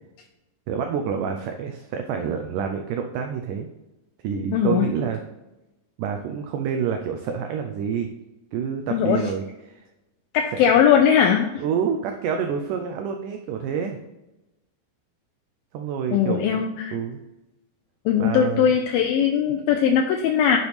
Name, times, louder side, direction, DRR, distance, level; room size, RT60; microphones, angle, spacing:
voice 1, 0.7-3.7 4.2-5.2 6.0-8.1 8.5-9.8 10.5-10.7 11.6-14.0 15.7-16.6 16.9-17.2 18.2-18.7, right 7 dB, 85° right, 4 dB, 1.8 m, -28 dB
voice 2, 4.5-4.9 8.9-9.2 10.3-11.5 16.1-16.9 18.1-20.6, left 8 dB, 80° left, 4 dB, 2.3 m, -19 dB
9.6 x 6.0 x 3.4 m, 0.99 s
omnidirectional pair, 4.4 m